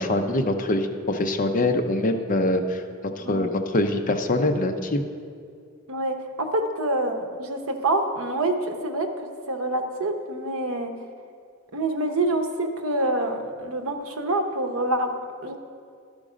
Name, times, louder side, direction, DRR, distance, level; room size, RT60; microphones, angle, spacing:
voice 1, 0.0-2.8 3.2-5.0, left 2 dB, 40° left, 6 dB, 0.5 m, -24 dB
voice 2, 5.9-9.1 9.5-10.9 11.7-15.1 15.4-15.6, right 2 dB, 80° right, 6 dB, 0.8 m, -26 dB
12.5 x 5.2 x 5.0 m, 2.3 s
head